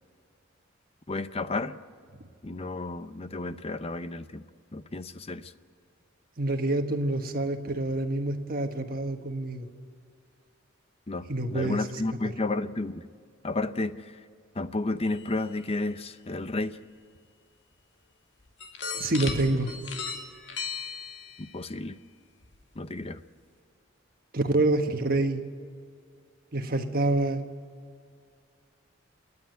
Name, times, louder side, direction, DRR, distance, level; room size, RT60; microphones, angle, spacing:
voice 1, 1.1-1.8 2.4-4.4 4.7-5.5 11.1-13.1 13.4-14.2 14.5-16.8 21.4-22.0 22.8-23.2, left 2 dB, 30° left, 12 dB, 0.7 m, -32 dB
voice 2, 6.4-9.7 11.3-11.8 12.2-12.3 18.9-19.7 24.3-25.4 26.5-27.4, right 2 dB, 50° right, 5 dB, 1.4 m, -27 dB
sound 1, 15.0-15.6 17.1-17.2 18.6-21.5 22.4-22.6 23.0-23.1, left 4 dB, 65° left, 2.1 m, -36 dB
29.0 x 9.8 x 9.3 m, 2.2 s
head